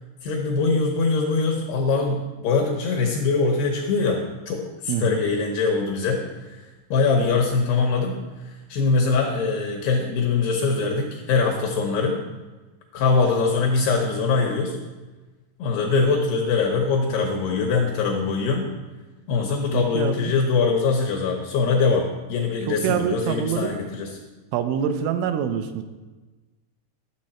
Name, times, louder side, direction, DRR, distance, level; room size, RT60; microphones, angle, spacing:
voice 1, 0.2-6.2 6.9-8.2 8.7-12.2 12.9-14.8 15.6-18.7 19.3-24.2, left 4 dB, 80° left, 1 dB, 2.4 m, -22 dB
voice 2, 4.9-5.2 19.7-20.3 22.7-23.8 24.5-25.8, right 8 dB, 85° right, 8 dB, 3.1 m, -25 dB
12.5 x 6.9 x 4.3 m, 1.2 s
omnidirectional pair, 5.5 m